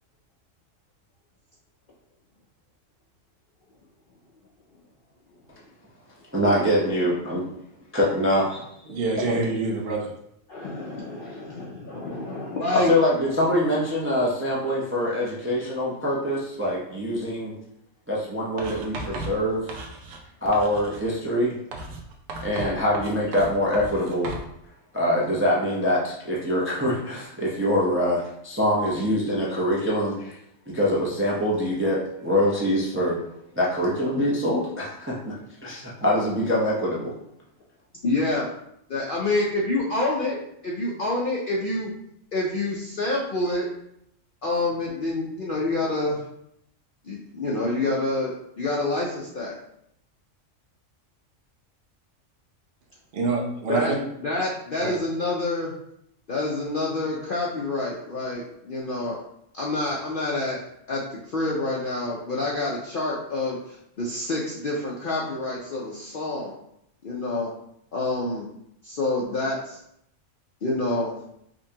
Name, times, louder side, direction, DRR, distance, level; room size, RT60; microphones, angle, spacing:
voice 1, 6.3-7.4 7.9-8.7 12.9-17.5 18.1-19.7 20.4-21.5 22.4-24.3 24.9-30.4 30.7-33.2 33.5-35.3 35.6-37.1, equal, 20° right, -5 dB, 0.3 m, -24 dB
voice 2, 8.9-10.1 53.1-53.8 54.8-55.0, right 3 dB, 55° right, 0 dB, 0.9 m, -26 dB
voice 3, 10.5-12.9 38.0-38.5 38.9-40.4 40.6-41.9 42.3-43.7 44.4-46.2 47.0-49.5 53.7-53.9 54.2-55.7 56.3-59.2 59.5-60.6 60.9-66.5 67.0-67.5 67.9-68.5 68.8-69.8 70.6-71.1, left 2 dB, 55° left, -4 dB, 0.6 m, -27 dB
Writing, 18.6-20.3 20.5-21.1 21.7-24.5, right 2 dB, 80° right, 1.0 m, -36 dB
5.2 x 2.2 x 2.8 m, 0.75 s
omnidirectional pair, 1.4 m